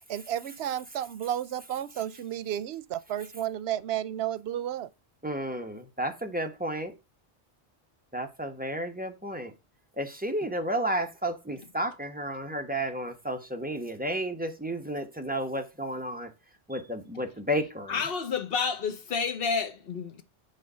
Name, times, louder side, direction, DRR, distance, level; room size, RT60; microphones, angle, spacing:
voice 1, 0.1-4.9, right 11 dB, 90° right, 0.8 m, -32 dB
voice 2, 5.2-6.9 8.1-9.5 10.0-16.3 16.7-17.9, right 1 dB, 10° right, 0.9 m, -32 dB
voice 3, 17.9-20.2, left 5 dB, 65° left, 1.1 m, -30 dB
7.5 x 4.0 x 5.5 m
omnidirectional pair, 1.1 m